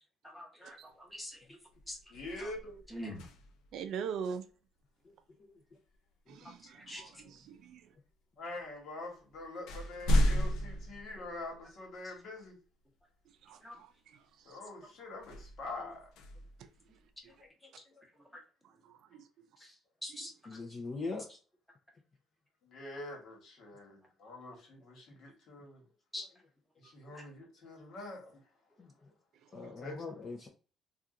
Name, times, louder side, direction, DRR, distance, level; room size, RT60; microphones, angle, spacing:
voice 1, 0.2-1.6 1.9-2.0 2.9-3.2 6.6-7.0 13.6-13.8 20.0-20.3 26.1-26.2 27.1-27.2, equal, 5° left, 1.0 m, -44 dB
sound 1, 1.1-1.3 1.7-3.8 5.9-6.1 6.9-7.7 8.6-8.7 9.1-11.9 12.4-12.5 15.1-17.3, left 1 dB, 85° left, 0.6 m, -34 dB
voice 2, 2.1-3.3 8.4-12.6 14.4-16.1 22.6-25.8 26.8-28.4 29.6-30.0, left 2 dB, 60° left, 1.4 m, -45 dB
voice 3, 3.7-4.4 6.3-7.8 13.4-13.9 14.5-14.6 18.9-19.0 20.1-20.2 29.6-29.7, right 7 dB, 70° right, 0.4 m, -42 dB
voice 4, 5.0-5.6 6.3-6.4 17.6-17.7 19.6-19.8 20.5-21.4 28.8-28.9 29.5-30.5, left 3 dB, 35° left, 0.6 m, -42 dB
2.7 x 2.4 x 3.6 m
cardioid pair, 130°, 0 cm